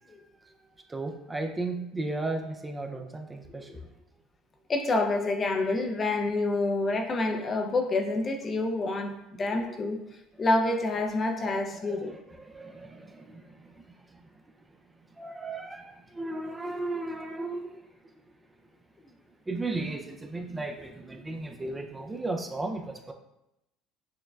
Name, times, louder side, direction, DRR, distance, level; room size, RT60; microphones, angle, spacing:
voice 1, 0.0-3.9 7.3-7.4 9.5-9.8 11.4-14.4 14.7-18.3 19.5-23.1, right 2 dB, 15° right, 4 dB, 0.4 m, -36 dB
voice 2, 4.7-10.0 10.4-12.2, left 2 dB, 35° left, 4 dB, 0.5 m, -27 dB
6.4 x 2.1 x 2.3 m, 0.88 s
supercardioid pair, 85°, 0 cm